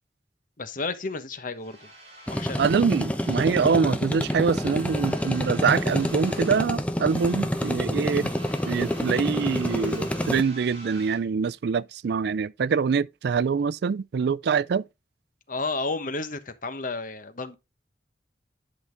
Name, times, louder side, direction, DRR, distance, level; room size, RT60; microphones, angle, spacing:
voice 1, 0.6-1.9 2.3-2.6 15.5-17.6, left 3 dB, 50° left, 1.2 m, -32 dB
sound 1, 1.6-3.9 4.2-6.8 7.0-11.3, right 1 dB, 35° right, 3.4 m, -47 dB
sound 2, 2.3-10.4, equal, 10° left, 1.0 m, -28 dB
voice 2, 2.6-8.3 8.7-14.8, right 5 dB, 65° right, 0.4 m, -25 dB
10.5 x 5.7 x 3.4 m
head